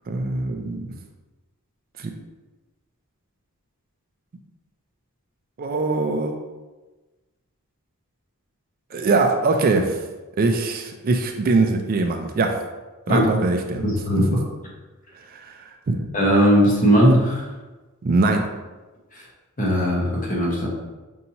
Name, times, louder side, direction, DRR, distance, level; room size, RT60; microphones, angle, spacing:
voice 1, 0.1-1.0 2.0-2.1 5.6-6.3 8.9-10.0 10.4-12.6 13.1-13.9 14.3-14.4 15.3-16.0 18.0-18.5, right 3 dB, 40° right, 4 dB, 0.4 m, -22 dB
voice 2, 13.8-14.3 16.1-17.4 19.6-20.7, equal, 35° left, -4 dB, 1.1 m, -18 dB
5.3 x 2.7 x 2.8 m, 1.2 s
head